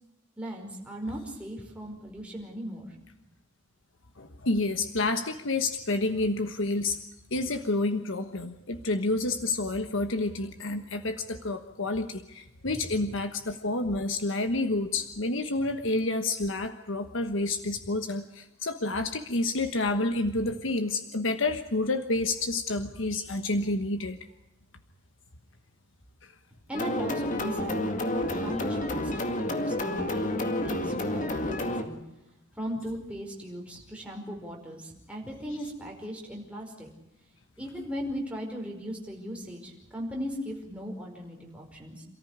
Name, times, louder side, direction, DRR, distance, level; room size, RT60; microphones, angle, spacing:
voice 1, 0.4-3.0 12.7-12.8 26.7-32.0 32.6-36.9 37.6-42.0, equal, 5° right, -1 dB, 5.2 m, -38 dB
voice 2, 4.2-7.0 7.3-24.2 26.2-26.3, left 2 dB, 80° left, 8 dB, 1.3 m, -29 dB
sound 1, 26.7-31.8, left 1 dB, 40° left, 2.1 m, -30 dB
28.0 x 14.0 x 9.5 m, 0.90 s
head